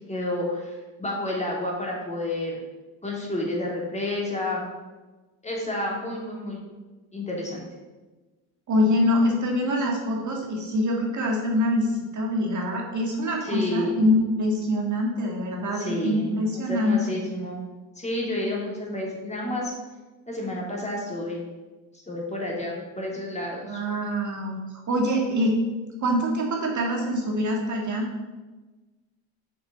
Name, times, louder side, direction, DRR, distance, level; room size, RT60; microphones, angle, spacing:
voice 1, 0.1-2.6 3.0-4.7 5.4-6.6 7.1-7.7 13.4-14.0 15.7-17.6 18.0-19.7 20.3-21.4 22.1-23.8, left 1 dB, 15° left, -2 dB, 2.8 m, -30 dB
voice 2, 8.7-11.9 12.1-17.2 23.6-24.6 24.9-25.6 26.0-28.0, left 1 dB, 40° right, 0 dB, 2.0 m, -24 dB
7.0 x 6.1 x 6.1 m, 1.2 s
supercardioid pair, 90°, 43 cm